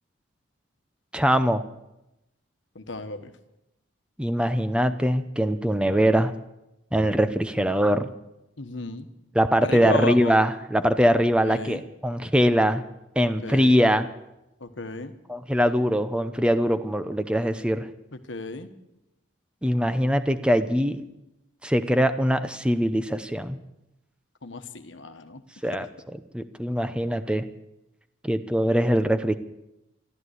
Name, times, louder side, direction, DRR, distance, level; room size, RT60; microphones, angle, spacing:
voice 1, 1.1-1.6 4.2-6.3 6.9-8.1 9.3-12.8 13.2-14.1 15.3-17.9 19.6-21.0 21.6-23.6 25.6-25.9 26.3-27.4 28.2-29.3, equal, 5° right, 11 dB, 0.7 m, -22 dB
voice 2, 2.7-3.3 8.6-9.1 9.6-10.3 11.4-11.8 13.4-13.8 14.6-15.1 18.1-18.7 24.4-25.4, left 2 dB, 65° left, 8 dB, 1.3 m, -33 dB
14.0 x 12.5 x 8.1 m, 0.91 s
head